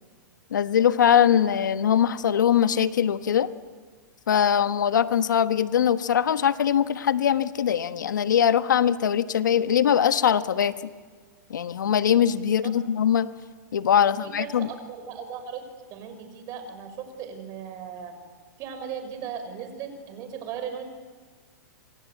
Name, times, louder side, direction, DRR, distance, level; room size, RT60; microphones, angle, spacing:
voice 1, 0.5-3.5 4.3-10.7 11.5-13.3 13.7-14.7, left 9 dB, 85° left, 11 dB, 1.3 m, -22 dB
voice 2, 14.0-15.6 15.9-18.1 18.6-20.8, right 7 dB, 35° right, 7 dB, 5.6 m, -37 dB
27.0 x 26.5 x 8.3 m, 1.5 s
hypercardioid pair, 135°, 10 cm